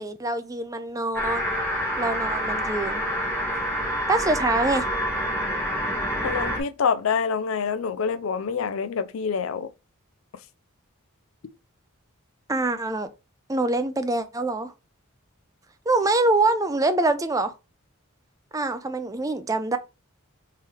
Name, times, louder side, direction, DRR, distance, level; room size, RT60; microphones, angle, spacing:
voice 1, 0.0-1.6 2.0-3.0 4.1-4.8 12.5-13.1 13.5-14.7 15.9-17.5 18.5-19.8, right 2 dB, 15° right, 0.4 m, -24 dB
sound 1, 1.1-6.6, equal, 10° left, 1.4 m, -27 dB
voice 2, 6.2-9.7, left 6 dB, 65° left, 0.4 m, -26 dB
3.9 x 3.0 x 4.3 m
head